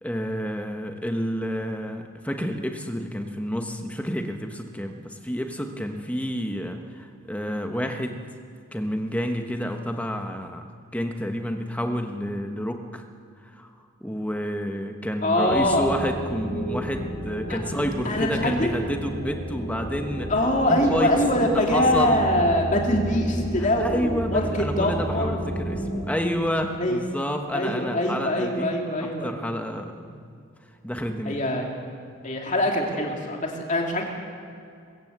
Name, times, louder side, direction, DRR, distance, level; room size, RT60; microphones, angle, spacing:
voice 1, 0.0-8.2 8.7-10.6 10.9-13.0 13.4-13.7 14.0-20.3 20.7-21.1 21.4-22.2 23.6-28.7 29.0-30.2 30.8-31.4, equal, 5° left, 5 dB, 1.2 m, -29 dB
voice 2, 15.2-15.9 17.5-17.6 18.0-18.7 20.3-25.4 26.7-27.0 27.5-29.3 31.2-31.7 32.2-34.1, left 1 dB, 35° left, 1 dB, 2.7 m, -23 dB
sound 1, 15.5-26.0, right 1 dB, 60° left, 4.8 m, -32 dB
21.5 x 15.0 x 8.1 m, 2.4 s
head